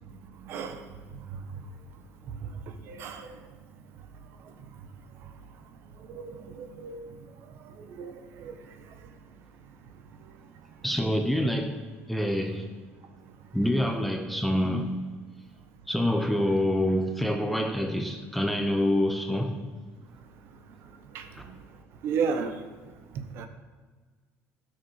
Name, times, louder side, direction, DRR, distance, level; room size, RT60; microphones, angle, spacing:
voice 1, 0.5-0.8 2.9-3.3 6.1-7.0 8.0-8.5 21.1-21.2 22.0-22.5 23.4-23.5, right 6 dB, 50° right, 1.1 m, -32 dB
voice 2, 10.8-11.8 12.1-12.7 13.5-15.0 15.9-19.6 21.3-21.4, left 1 dB, ahead, 0.7 m, -26 dB
14.5 x 6.6 x 5.5 m
cardioid pair, 165°, 5 cm